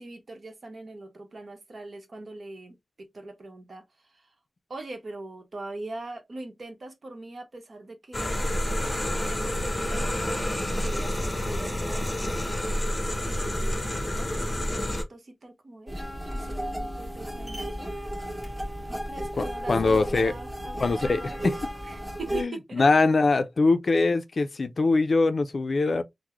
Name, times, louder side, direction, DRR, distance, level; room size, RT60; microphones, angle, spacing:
voice 1, 0.0-4.3 4.7-8.4 9.3-10.5 10.8-12.5 13.3-15.9 16.3-17.9 18.9-21.5 21.8-22.9, right 2 dB, 55° right, 0.9 m, -42 dB
sound 1, 8.1-15.0, left 1 dB, 25° left, 0.8 m, -28 dB
sound 2, 15.9-22.4, equal, 20° right, 1.6 m, -34 dB
voice 2, 19.4-20.3 20.8-21.6 22.3-26.0, left 3 dB, 60° left, 0.4 m, -23 dB
3.5 x 2.0 x 3.0 m
cardioid pair, 65°, 0 cm